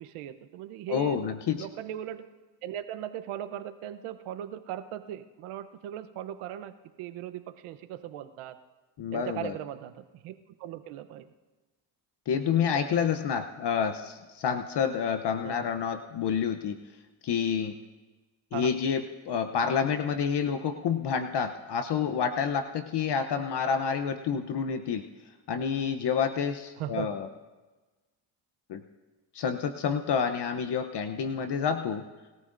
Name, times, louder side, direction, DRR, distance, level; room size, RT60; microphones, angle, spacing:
voice 1, 0.0-1.2 1.6-2.3 2.6-6.7 7.0-8.6 9.1-10.3 10.6-11.2 12.9-13.2 15.4-15.6 18.5-18.7 26.8-27.1, right 11 dB, 80° right, 9 dB, 1.0 m, -38 dB
voice 2, 0.9-1.7 9.0-9.6 12.3-16.8 17.2-17.8 18.5-25.0 25.5-27.3 28.7-28.8 29.3-32.0, left 7 dB, 55° left, 8 dB, 0.9 m, -28 dB
26.5 x 13.5 x 2.6 m, 1.2 s
supercardioid pair, 75°, 49 cm